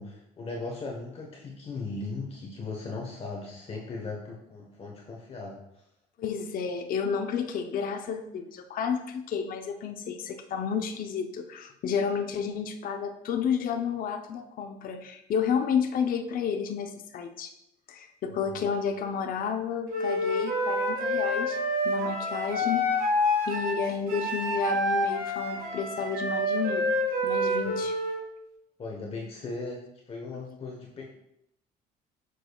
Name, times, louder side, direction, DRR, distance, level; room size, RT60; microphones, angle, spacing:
voice 1, 0.0-5.6 18.5-18.6 27.6-27.8 28.8-31.1, left 3 dB, 35° left, -1 dB, 1.1 m, -38 dB
voice 2, 6.2-17.5 17.9-21.6 21.8-22.9 23.5-26.9 27.2-28.0 30.3-30.4, left 6 dB, 55° left, 5 dB, 0.7 m, -31 dB
Wind instrument woodwind instrument, 19.9-28.2, left 1 dB, 60° right, 1.9 m, -28 dB
7.7 x 6.3 x 2.4 m, 0.80 s
cardioid pair, 110°, 17 cm